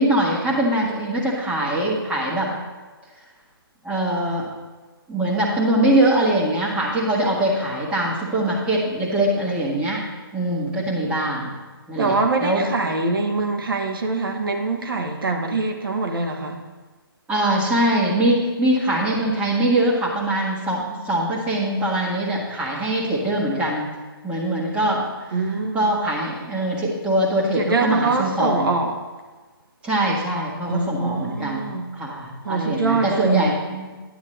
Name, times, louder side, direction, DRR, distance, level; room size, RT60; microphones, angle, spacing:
voice 1, 0.0-2.5 3.8-4.5 5.1-10.0 10.3-11.5 11.9-12.1 12.4-12.6 17.3-23.9 24.2-25.0 25.7-28.7 29.8-33.9, right 1 dB, 10° right, -5 dB, 1.7 m, -22 dB
voice 2, 12.0-16.6 25.3-25.9 27.6-29.0 30.7-31.9 32.4-33.6, right 3 dB, 65° right, 4 dB, 1.1 m, -24 dB
10.5 x 9.5 x 3.3 m, 1.3 s
figure-of-eight pair, 140°, 13 cm